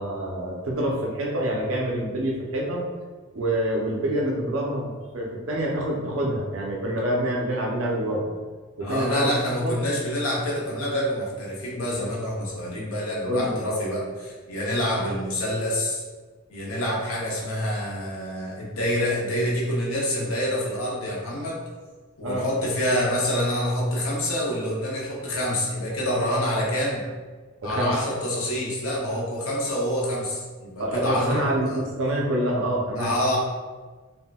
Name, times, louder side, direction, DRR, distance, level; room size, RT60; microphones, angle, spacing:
voice 1, 0.0-2.9 3.3-8.3 8.8-9.3 9.6-9.8 13.2-13.6 22.2-22.5 27.6-28.0 30.8-33.1, right 1 dB, 75° right, -2 dB, 0.6 m, -26 dB
voice 2, 8.8-16.0 16.5-21.6 22.2-27.0 27.6-31.4 31.7-31.8 33.0-33.4, equal, 85° left, -3 dB, 0.7 m, -27 dB
3.6 x 2.1 x 2.3 m, 1.4 s
head